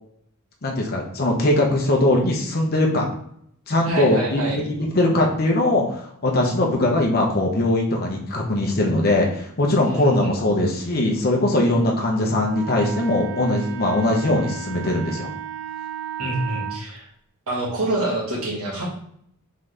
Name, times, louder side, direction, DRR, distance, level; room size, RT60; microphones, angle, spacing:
voice 1, 0.6-3.1 3.7-15.3, left 1 dB, 45° left, -1 dB, 0.8 m, -21 dB
voice 2, 3.8-4.6 9.8-10.3 16.2-17.1 17.5-18.8, right 1 dB, 90° right, -3 dB, 1.6 m, -26 dB
Wind instrument woodwind instrument, 12.5-16.8, right 10 dB, 55° right, 0.5 m, -34 dB
4.0 x 3.7 x 3.3 m, 0.68 s
head